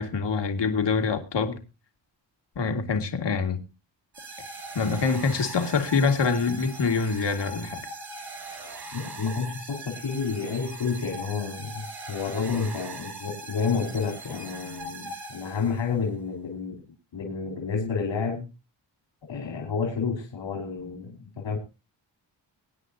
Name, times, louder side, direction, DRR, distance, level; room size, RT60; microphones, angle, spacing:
voice 1, 0.0-1.6 2.6-3.6 4.8-7.8, left 5 dB, 70° left, 2.1 m, -25 dB
sound 1, 4.1-16.0, right 2 dB, 60° right, 4.8 m, -40 dB
voice 2, 8.9-16.8 17.1-18.4 19.3-21.6, left 5 dB, 85° left, 4.2 m, -30 dB
23.5 x 9.4 x 2.8 m
wide cardioid pair, 95°, 44 cm